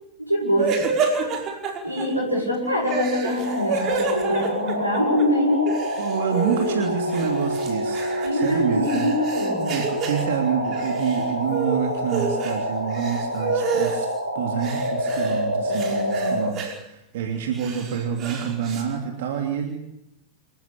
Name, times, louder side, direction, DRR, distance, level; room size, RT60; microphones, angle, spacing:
voice 1, 0.2-0.9 1.8-5.7 8.2-9.8 15.7-16.4, left 1 dB, 85° right, -2 dB, 6.7 m, -24 dB
sound 1, 0.6-2.0 2.8-5.2 5.5-6.8 7.1-10.2 10.7-11.2 11.5-12.6 12.9-14.0 14.6-15.4 15.7-16.7 17.4-18.8, right 5 dB, 35° right, 5.3 m, -29 dB
sound 2, 3.4-16.5, equal, 85° left, 4.7 m, -27 dB
voice 2, 6.0-9.1 9.7-14.1 14.3-19.8, right 7 dB, 55° right, 4 dB, 3.0 m, -27 dB
27.5 x 15.0 x 8.9 m, 0.79 s
figure-of-eight pair, 90°, 0 cm